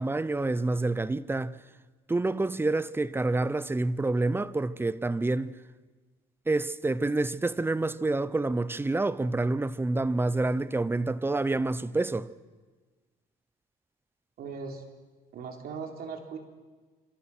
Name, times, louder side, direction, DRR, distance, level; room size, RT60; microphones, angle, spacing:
voice 1, 0.0-1.6 2.1-5.5 6.5-12.3, right 2 dB, 15° right, 0.8 m, -28 dB
voice 2, 14.4-14.8 15.3-16.4, right 5 dB, 65° right, 3.9 m, -38 dB
27.0 x 26.0 x 6.2 m
cardioid pair, 110°, 17 cm